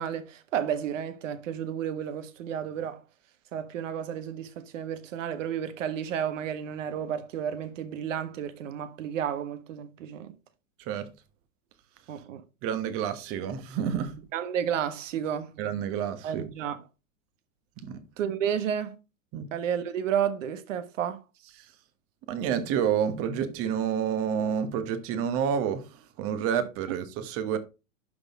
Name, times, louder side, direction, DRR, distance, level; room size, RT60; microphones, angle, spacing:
voice 1, 0.0-3.0 3.5-10.3 12.1-12.4 14.3-15.5 16.2-16.8 18.2-19.0 19.5-21.2, right 9 dB, 65° right, 1.4 m, -31 dB
voice 2, 10.8-11.1 12.6-14.2 15.6-16.5 17.8-18.0 19.3-19.5 22.3-27.6, right 8 dB, 35° right, 1.3 m, -29 dB
11.5 x 4.1 x 3.6 m
hypercardioid pair, 130°, 42 cm